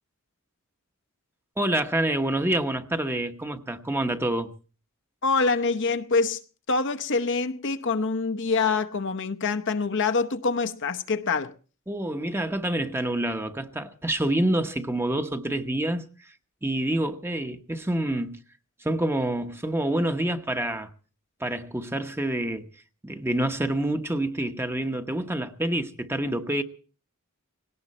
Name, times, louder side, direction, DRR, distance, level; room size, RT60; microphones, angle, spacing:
voice 1, 1.6-4.5 11.9-16.0 16.6-18.4 18.8-20.9 21.4-22.7 23.0-26.6, right 1 dB, 10° right, 1.0 m, -27 dB
voice 2, 5.2-6.4 6.7-11.5, left 4 dB, 60° left, 0.9 m, -25 dB
19.0 x 17.5 x 4.3 m
head